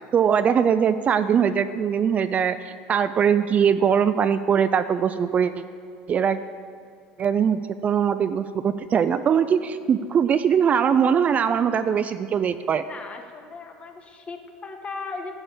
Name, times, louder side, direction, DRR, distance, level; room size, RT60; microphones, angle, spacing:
voice 1, 0.1-5.5 6.1-6.4 7.2-12.8, right 7 dB, 35° right, 11 dB, 0.4 m, -21 dB
voice 2, 12.8-15.3, left 4 dB, 30° left, 5 dB, 1.3 m, -37 dB
11.5 x 5.3 x 6.9 m, 2.3 s
hypercardioid pair, 90°, 4 cm